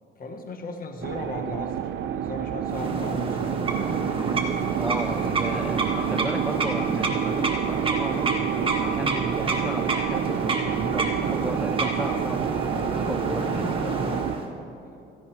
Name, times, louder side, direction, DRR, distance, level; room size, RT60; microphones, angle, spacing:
voice 1, 0.2-3.6 12.7-13.1 13.6-14.3, left 2 dB, 45° left, 4 dB, 1.3 m, -37 dB
sound 1, 1.0-14.4, right 9 dB, 70° right, 0.5 m, -28 dB
sound 2, 2.7-14.5, right 2 dB, 25° right, 1.6 m, -29 dB
voice 2, 4.8-8.3 8.8-13.7, right 1 dB, 5° right, 9 dB, 0.3 m, -34 dB
16.5 x 14.5 x 2.9 m, 2.7 s
cardioid pair, 90°, 20 cm